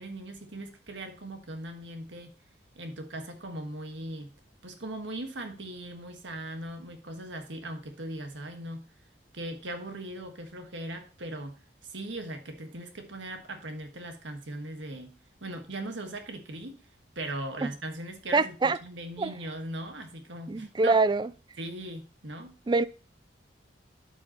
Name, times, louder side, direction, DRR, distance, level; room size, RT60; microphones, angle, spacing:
voice 1, 0.0-2.3 2.7-4.4 4.6-8.8 9.3-16.8 17.1-21.0 21.6-22.6, right 1 dB, 80° right, 1.5 m, -39 dB
voice 2, 18.3-18.8 19.2-19.3 20.5-21.3 22.7-22.8, right 3 dB, 25° right, 0.3 m, -24 dB
12.0 x 5.5 x 2.9 m
head